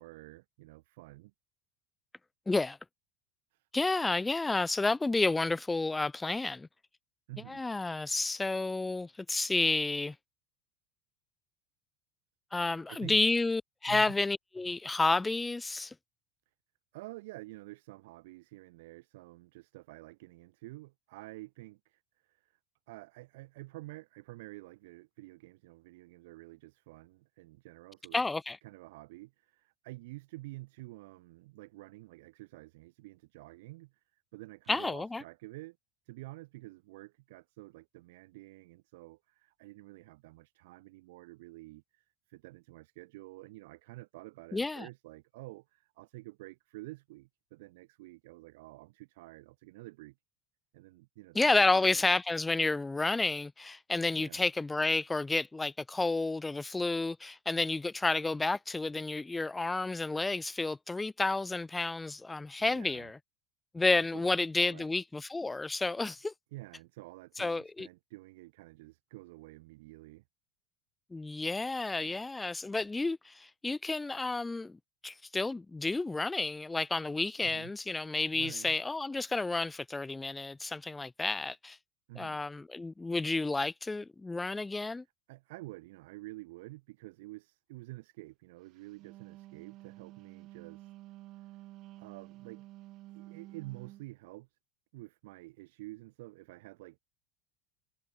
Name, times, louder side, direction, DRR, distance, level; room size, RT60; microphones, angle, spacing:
voice 1, 0.0-1.3 3.5-3.7 7.3-7.6 12.9-13.2 13.9-14.2 16.9-22.6 22.9-28.2 28.6-35.8 36.1-50.2 50.7-52.0 54.1-54.5 62.7-63.1 64.1-64.9 66.5-70.2 77.4-77.7 78.3-78.8 82.1-82.4 85.3-90.9 91.3-91.6 92.0-92.7 93.1-94.6 94.9-97.0, right 20 dB, 80° right, 2.5 m, -49 dB
voice 2, 2.5-2.8 3.7-6.7 7.5-10.2 12.5-15.9 28.1-28.6 34.7-35.2 44.5-44.9 51.3-63.2 63.7-66.3 67.4-67.9 71.1-81.8 82.2-85.0, left 3 dB, 10° left, 0.6 m, -31 dB
Wind instrument woodwind instrument, 88.8-94.1, right 17 dB, 55° right, 7.0 m, -51 dB
supercardioid pair, 110°, 0 cm